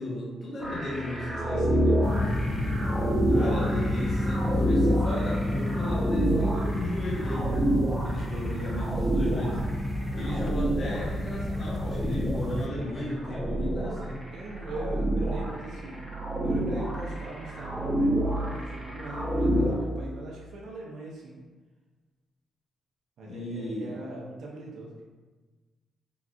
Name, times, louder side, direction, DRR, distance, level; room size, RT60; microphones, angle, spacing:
voice 1, 0.0-1.7 3.3-7.7 8.0-9.6 10.1-14.2 23.2-24.0, left 1 dB, 50° left, -6 dB, 0.8 m, -35 dB
sound 1, 0.6-19.8, right 1 dB, 5° right, 0.8 m, -28 dB
voice 2, 1.4-2.5 14.3-16.0 16.4-21.4 23.2-25.0, right 2 dB, 75° right, -3 dB, 0.6 m, -41 dB
sound 2, 2.0-12.7, left 1 dB, 30° left, 0.3 m, -30 dB
3.8 x 2.4 x 2.3 m, 1.3 s
cardioid pair, 70°, 0 cm